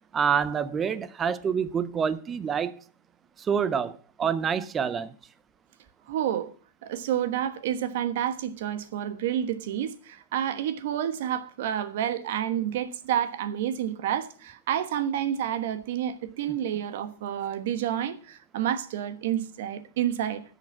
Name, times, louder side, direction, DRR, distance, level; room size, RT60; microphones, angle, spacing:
voice 1, 0.1-2.7 3.4-5.2, right 7 dB, 10° right, 0.4 m, -27 dB
voice 2, 6.1-6.5 6.8-20.4, right 10 dB, 45° right, 1.2 m, -29 dB
10.5 x 6.5 x 7.4 m
supercardioid pair, 175°, 0 cm